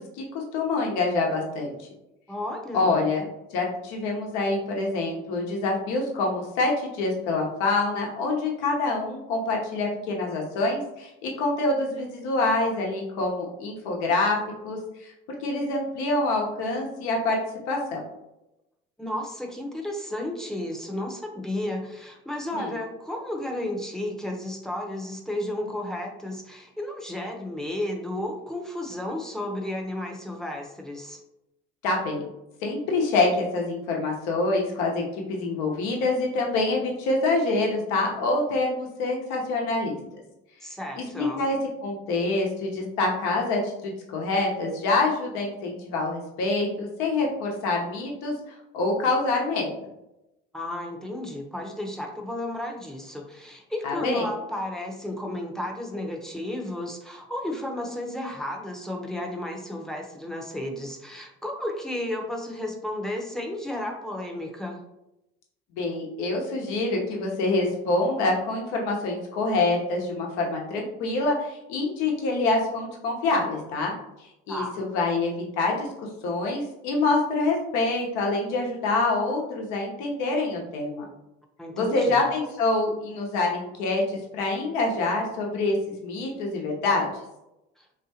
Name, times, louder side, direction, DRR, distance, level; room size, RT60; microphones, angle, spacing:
voice 1, 0.2-1.7 2.7-3.2 3.5-14.4 14.6-15.1 15.4-17.4 17.7-18.0 22.5-22.7 31.8-32.2 32.6-35.0 35.3-40.2 41.0-49.7 53.8-54.3 65.8-73.9 74.5-75.9 76.2-81.0 81.8-85.8 86.0-87.1, left 2 dB, 75° left, 0 dB, 1.0 m, -26 dB
voice 2, 2.3-3.0 19.0-31.2 40.6-41.4 50.5-64.8 74.5-74.8 81.6-82.3 87.8-87.9, left 1 dB, ahead, 1 dB, 0.7 m, -33 dB
3.4 x 2.7 x 2.8 m, 0.90 s
hypercardioid pair, 75°, 30 cm